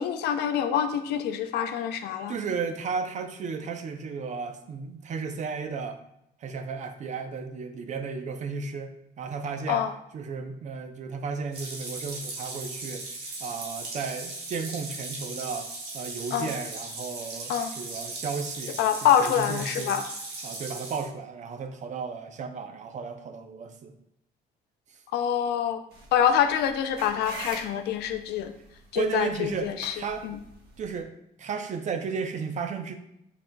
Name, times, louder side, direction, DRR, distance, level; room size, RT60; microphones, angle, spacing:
voice 1, 0.0-2.3 9.7-9.9 16.3-16.5 17.5-17.7 18.8-20.0 25.1-25.8 26.1-28.5 28.9-29.9 30.2-30.4, left 9 dB, 75° left, 8 dB, 0.5 m, -25 dB
voice 2, 2.3-6.0 6.4-8.9 9.2-9.8 10.1-13.1 13.4-15.7 15.9-20.0 20.4-23.9 28.9-30.3 30.8-31.1 31.4-32.9, right 5 dB, 45° right, 7 dB, 0.6 m, -34 dB
sound 1, 11.5-21.1, right 2 dB, 90° right, 1.3 m, -38 dB
sound 2, 25.9-31.0, right 2 dB, 70° right, 1.3 m, -44 dB
5.4 x 4.2 x 2.2 m, 0.79 s
cardioid pair, 110°, 17 cm